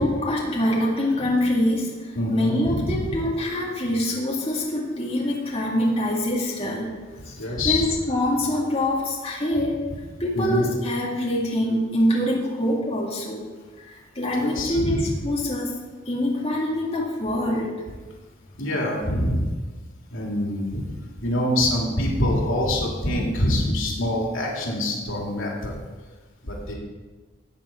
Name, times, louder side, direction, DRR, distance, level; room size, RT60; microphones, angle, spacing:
voice 1, 0.0-6.9 7.2-9.9 10.2-13.5 13.8-15.8 16.1-17.8, left 1 dB, 30° left, -4 dB, 2.1 m, -24 dB
voice 2, 2.1-3.2 7.4-7.9 10.3-10.7 14.4-15.0 18.6-19.5 20.1-20.8 21.2-25.8 26.4-26.7, left 1 dB, 85° left, -2 dB, 2.8 m, -25 dB
13.0 x 8.4 x 4.4 m, 1.3 s
head